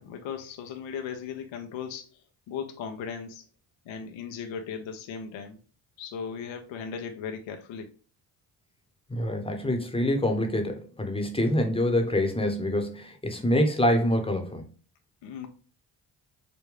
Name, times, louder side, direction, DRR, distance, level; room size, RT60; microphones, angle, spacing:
voice 1, 0.0-2.2 2.5-3.4 3.9-5.6 6.0-7.9 15.2-15.5, left 6 dB, 80° left, 0.9 m, -37 dB
voice 2, 9.1-14.7, left 1 dB, 10° left, 1.0 m, -26 dB
5.2 x 2.2 x 3.3 m
supercardioid pair, 70°, 45 cm